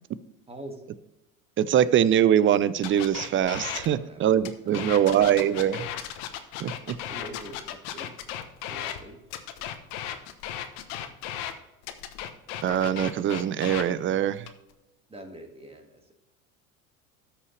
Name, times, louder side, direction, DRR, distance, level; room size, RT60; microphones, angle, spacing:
voice 1, 0.5-0.8 3.9-5.3 5.7-5.9 7.1-8.1 8.7-9.2 15.1-16.1, right 1 dB, 15° right, 3 dB, 2.0 m, -44 dB
voice 2, 1.6-5.9 6.6-7.0 12.6-14.5, right 10 dB, 30° right, 17 dB, 0.5 m, -23 dB
sound 1, 2.8-3.9 4.4-9.0 9.3-11.5 11.8-13.9 14.4-14.7, left 11 dB, 60° left, 1.2 m, -35 dB
13.5 x 5.9 x 3.3 m, 0.95 s
hypercardioid pair, 80°, 43 cm